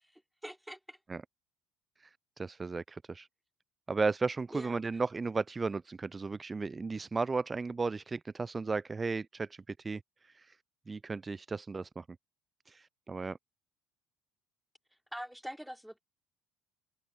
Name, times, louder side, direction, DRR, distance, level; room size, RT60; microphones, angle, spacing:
voice 1, 0.1-1.0 4.5-4.8 15.1-16.0, equal, ahead, 3.7 m, -44 dB
voice 2, 2.4-3.3 3.9-10.6 10.9-12.0 12.7-13.4, right 4 dB, 20° right, 0.5 m, -35 dB
figure-of-eight pair, 60°, 0 cm